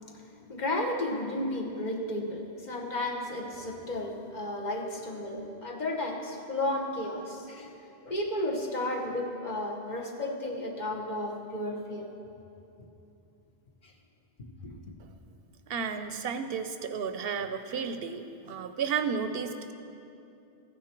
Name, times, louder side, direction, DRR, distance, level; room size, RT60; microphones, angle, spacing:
voice 1, 0.5-7.7 8.0-12.1 14.6-14.7, left 1 dB, 45° left, -1 dB, 1.3 m, -33 dB
voice 2, 15.7-19.7, right 6 dB, 70° right, 8 dB, 0.8 m, -32 dB
14.5 x 9.7 x 4.5 m, 2.7 s
omnidirectional pair, 1.1 m